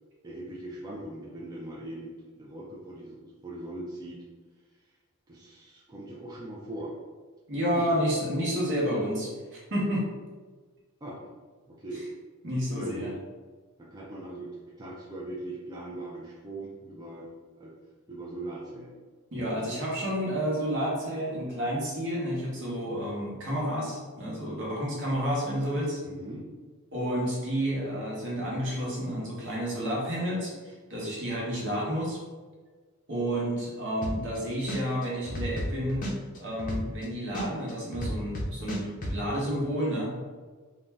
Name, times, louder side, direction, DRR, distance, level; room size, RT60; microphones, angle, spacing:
voice 1, 0.2-4.2 4.9-5.0 5.3-7.0 7.8-7.9 11.0-11.2 11.7-12.0 12.7-13.1 13.8-17.3 17.6-17.7 18.1-19.0 26.0-26.5, right 1 dB, 20° right, -5 dB, 0.3 m, -40 dB
voice 2, 7.5-10.1 12.4-13.1 19.3-26.0 26.9-32.2 33.1-36.0 36.4-40.1, equal, 60° right, -4 dB, 0.9 m, -30 dB
sound 1, 34.0-34.4 34.7-37.0 37.3-39.1, equal, 40° left, 0.5 m, -32 dB
2.5 x 2.2 x 3.2 m, 1.4 s
head